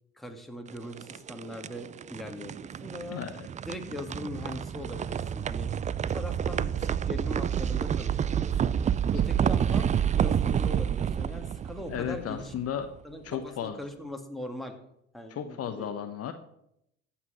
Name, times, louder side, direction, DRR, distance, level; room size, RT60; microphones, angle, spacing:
voice 1, 0.2-3.2 3.6-5.7 6.1-8.8 9.1-12.5 13.0-14.8 15.1-15.9, left 1 dB, ahead, 3 dB, 2.2 m, -40 dB
sound 1, 0.7-12.8, right 8 dB, 20° right, 0.4 m, -29 dB
voice 2, 3.1-3.5 11.9-12.9 13.2-13.8 15.3-16.3, left 9 dB, 45° left, 8 dB, 1.0 m, -34 dB
14.5 x 5.9 x 6.3 m, 0.79 s
hypercardioid pair, 65°, 33 cm